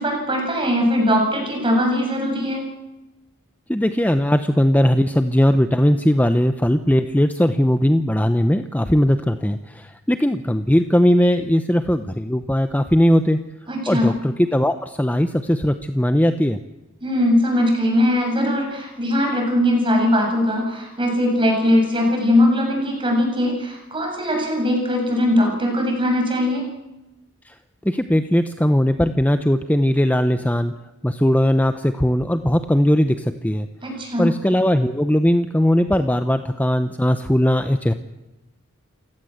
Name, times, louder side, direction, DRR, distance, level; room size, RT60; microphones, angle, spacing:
voice 1, 0.0-2.7 13.7-14.1 17.0-26.7 33.8-34.3, left 1 dB, 25° right, 1 dB, 7.6 m, -20 dB
voice 2, 3.7-13.4 13.9-16.6 27.5-27.6 27.8-30.7 31.0-33.7 34.2-37.9, equal, 10° left, 9 dB, 0.8 m, -19 dB
28.5 x 17.0 x 7.9 m, 1.0 s
head